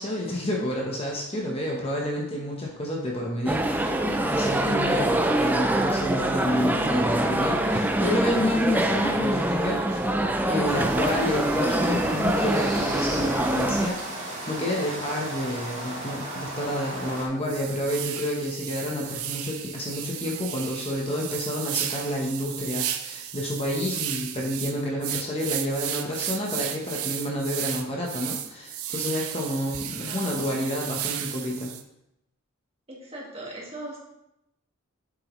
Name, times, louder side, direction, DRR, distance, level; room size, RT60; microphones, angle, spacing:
voice 1, 0.0-10.0 10.5-31.7, left 1 dB, 25° left, -2 dB, 1.1 m, -29 dB
sound 1, 3.5-13.9, right 1 dB, 10° right, 0.4 m, -24 dB
sound 2, 10.6-17.3, right 1 dB, 55° right, 2.0 m, -35 dB
sound 3, 17.0-17.1 17.4-31.8, right 11 dB, 80° right, 0.6 m, -34 dB
voice 2, 30.0-30.6 32.9-34.0, right 1 dB, 25° right, -3 dB, 1.9 m, -40 dB
7.7 x 6.3 x 3.2 m, 0.84 s
head